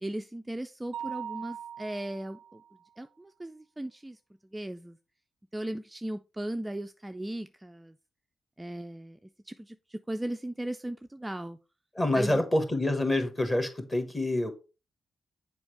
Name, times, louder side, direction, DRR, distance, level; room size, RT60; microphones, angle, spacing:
voice 1, 0.0-2.6 3.0-4.2 4.5-5.0 5.5-7.9 8.6-9.2 9.5-11.6 12.1-12.4, right 1 dB, 10° right, 0.3 m, -37 dB
Mallet percussion, 0.9-2.7, right 9 dB, 85° right, 0.3 m, -40 dB
voice 2, 11.9-14.5, left 1 dB, 25° left, 1.4 m, -27 dB
7.0 x 4.5 x 3.3 m
cardioid pair, 95°, 0 cm